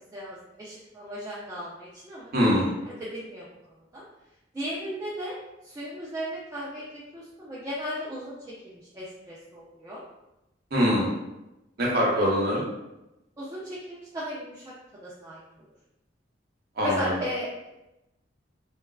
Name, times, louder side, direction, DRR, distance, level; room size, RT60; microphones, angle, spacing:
voice 1, 0.1-2.3 3.0-3.4 3.9-4.0 4.5-5.4 5.6-6.8 7.1-8.4 8.7-10.0 13.4-14.7 15.0-15.4 16.8-17.7, equal, 20° right, -7 dB, 0.4 m, -35 dB
voice 2, 2.3-2.7 10.7-11.1 11.8-12.6 16.8-17.2, equal, 55° right, -4 dB, 0.8 m, -23 dB
3.2 x 2.3 x 2.3 m, 0.95 s
head